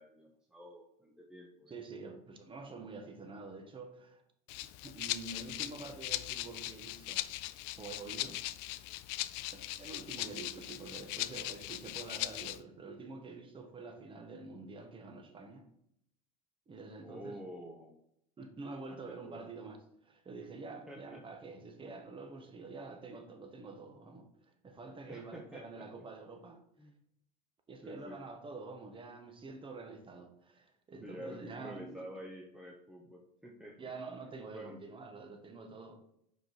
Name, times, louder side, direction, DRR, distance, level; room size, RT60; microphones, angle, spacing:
voice 1, 0.0-1.7 17.0-18.0 18.9-19.5 20.9-21.2 25.1-25.6 26.8-27.0 27.8-28.2 31.0-33.9 34.5-34.8, equal, 5° right, 0.9 m, -49 dB
voice 2, 1.7-4.2 4.8-7.3 7.8-8.4 9.5-15.7 16.7-17.4 18.4-26.6 27.7-32.1 33.8-36.0, right 3 dB, 25° right, 1.3 m, -47 dB
Rattle (instrument), 4.5-12.6, left 17 dB, 60° left, 0.4 m, -40 dB
5.2 x 4.8 x 4.6 m
supercardioid pair, 95°, 20 cm